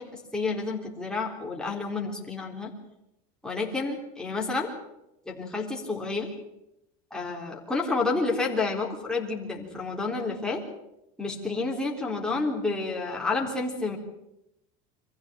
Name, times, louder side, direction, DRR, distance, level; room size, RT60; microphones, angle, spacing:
voice 1, 0.0-2.7 3.4-4.7 5.3-6.3 7.1-10.6 11.2-14.0, left 3 dB, 5° left, -2 dB, 3.8 m, -30 dB
24.5 x 15.0 x 8.9 m, 0.87 s
cardioid pair, 145°, 18 cm